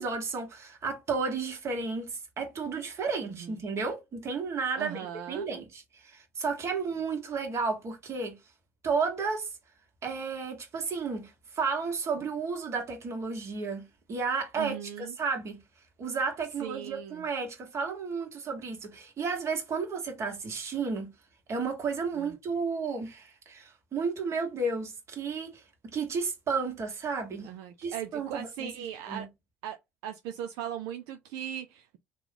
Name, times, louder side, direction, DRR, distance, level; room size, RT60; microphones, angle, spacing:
voice 1, 0.0-8.4 8.8-9.5 10.0-15.6 16.0-21.1 21.5-27.5 27.8-28.7 29.1-29.3, right 4 dB, 45° right, 1.3 m, -32 dB
voice 2, 3.2-3.6 4.8-5.6 14.6-15.2 16.6-17.2 22.1-22.3 27.4-29.3 29.6-29.8 30.0-32.0, right 10 dB, 75° right, 0.4 m, -39 dB
3.0 x 2.3 x 3.7 m
hypercardioid pair, 75°, 7 cm